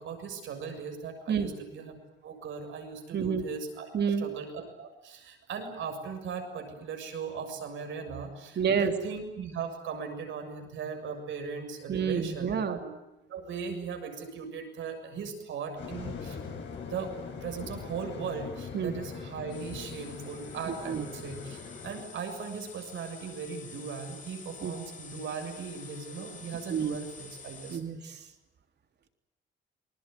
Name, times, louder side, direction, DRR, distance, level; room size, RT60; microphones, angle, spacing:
voice 1, 0.0-2.0 2.2-3.9 4.2-12.9 13.3-16.4 16.8-17.1 17.4-27.8, right 6 dB, 75° right, 6 dB, 6.9 m, -38 dB
voice 2, 3.1-3.4 3.9-4.3 8.5-8.9 11.9-12.8 18.7-18.9 20.7-21.1 24.6-24.7 26.7-26.9 27.7-28.2, right 7 dB, 60° right, 6 dB, 3.4 m, -29 dB
sound 1, 15.8-22.0, left 5 dB, 65° left, 7.8 m, -41 dB
sound 2, 19.5-27.8, left 5 dB, 40° left, 4.1 m, -49 dB
28.0 x 21.0 x 9.5 m, 0.91 s
cardioid pair, 90°, 20 cm